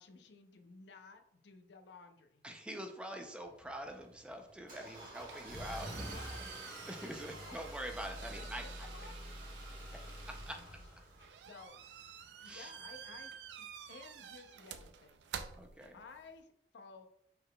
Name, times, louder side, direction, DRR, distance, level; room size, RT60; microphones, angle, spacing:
voice 1, 0.0-2.4 3.1-3.2 4.8-5.0 6.0-6.5 7.0-7.6 7.9-9.5 10.5-10.8 11.5-11.8 12.4-15.2 15.9-17.1, left 4 dB, 90° left, 7 dB, 0.5 m, -56 dB
voice 2, 2.4-6.2 6.9-8.9 10.3-10.6 12.4-12.7 15.6-16.0, right 1 dB, 5° right, 4 dB, 0.4 m, -45 dB
Car / Engine starting, 3.4-11.6, equal, 50° right, 1.4 m, -47 dB
sound 1, 4.9-16.4, right 8 dB, 85° right, 0.4 m, -51 dB
5.4 x 3.7 x 2.2 m, 0.75 s
head